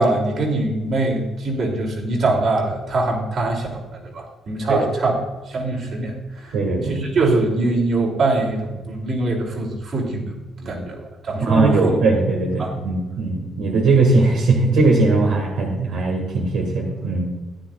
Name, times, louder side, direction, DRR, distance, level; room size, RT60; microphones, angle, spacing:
voice 1, 0.0-5.1 5.5-6.6 6.8-10.3 10.6-12.0 12.6-12.8, right 2 dB, 55° right, 0 dB, 3.0 m, -23 dB
voice 2, 6.5-7.0 10.6-10.8 11.4-17.3, right 3 dB, 90° right, -1 dB, 1.9 m, -19 dB
14.5 x 10.0 x 2.5 m, 1.2 s
cardioid pair, 90°, 0 cm